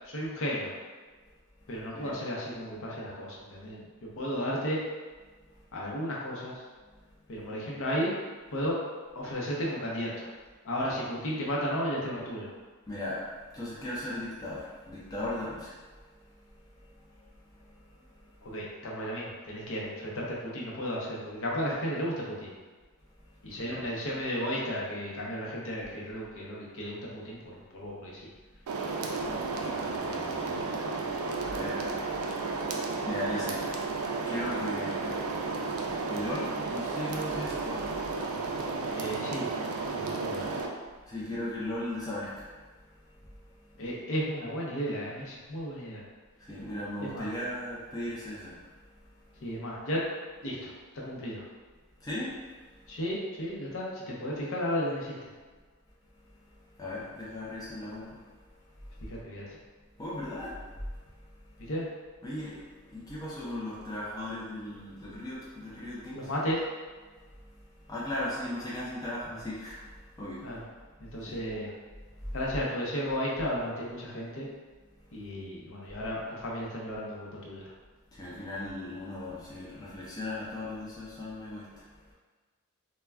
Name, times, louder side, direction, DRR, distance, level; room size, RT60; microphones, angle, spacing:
voice 1, 0.1-0.7 1.7-4.8 5.7-6.6 7.3-8.1 8.5-8.8 9.2-10.3 10.6-12.5 18.4-22.5 23.4-27.4 27.7-28.2 29.6-29.7 38.9-39.5 39.9-40.5 43.8-46.0 47.0-47.3 49.4-50.0 50.4-50.7 51.0-51.4 52.9-55.1 59.0-59.6 61.7-61.8 66.1-66.6 69.3-69.4 70.4-70.6 71.0-71.7 72.3-74.5 75.1-77.6, equal, 60° left, -4 dB, 0.6 m, -34 dB
voice 2, 1.6-2.1 5.3-5.7 6.8-7.3 12.9-18.6 23.2-23.9 28.6-28.7 29.1-39.1 40.9-43.8 46.4-49.5 52.0-53.0 56.1-59.1 59.8-61.7 62.2-66.3 67.0-71.4 72.1-72.4 74.9-75.2 78.1-82.1, left 1 dB, 15° left, -7 dB, 0.4 m, -39 dB
sound 1, 28.7-40.7, right 3 dB, 70° right, 0.3 m, -33 dB
2.2 x 2.2 x 3.4 m, 1.4 s
head